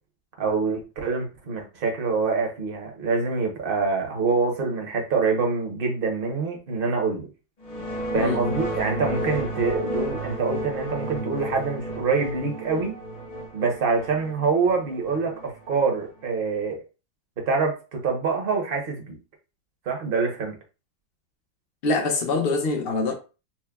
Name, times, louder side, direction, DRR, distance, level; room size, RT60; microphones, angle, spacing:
voice 1, 0.4-7.3 8.1-12.9 13.5-16.8 17.4-19.2 19.9-20.5, right 4 dB, 45° right, 0.8 m, -25 dB
sound 1, 7.6-16.3, right 1 dB, 35° left, 0.7 m, -32 dB
voice 2, 21.8-23.1, left 3 dB, 80° left, 0.5 m, -24 dB
5.8 x 2.1 x 2.3 m
omnidirectional pair, 1.8 m